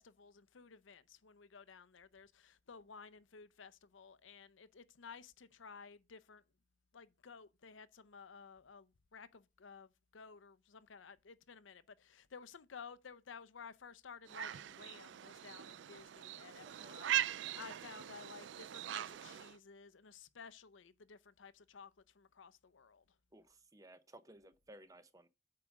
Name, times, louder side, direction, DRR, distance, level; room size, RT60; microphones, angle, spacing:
voice 1, 0.0-6.4 6.9-23.0, left 5 dB, 85° left, 0.7 m, -55 dB
sound 1, 14.3-19.6, right 11 dB, 75° right, 0.4 m, -41 dB
voice 2, 16.6-17.0 23.3-25.3, right 1 dB, 15° right, 0.6 m, -58 dB
8.5 x 4.8 x 6.3 m
head